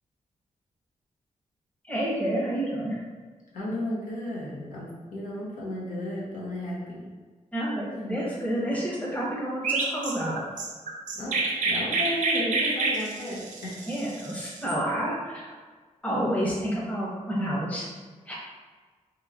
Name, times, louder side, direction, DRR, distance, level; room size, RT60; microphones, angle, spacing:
voice 1, 1.9-3.0 7.5-10.4 13.9-15.6 16.0-17.9 18.2-18.3, right 1 dB, 10° left, -5 dB, 0.8 m, -29 dB
voice 2, 3.5-7.0 8.1-8.2 11.1-11.4 11.6-13.8, left 1 dB, 85° left, -5 dB, 0.8 m, -33 dB
Chirp tweet, 9.6-14.8, right 3 dB, 80° right, 0.5 m, -28 dB
3.0 x 2.9 x 2.5 m, 1.4 s
wide cardioid pair, 105°, 13 cm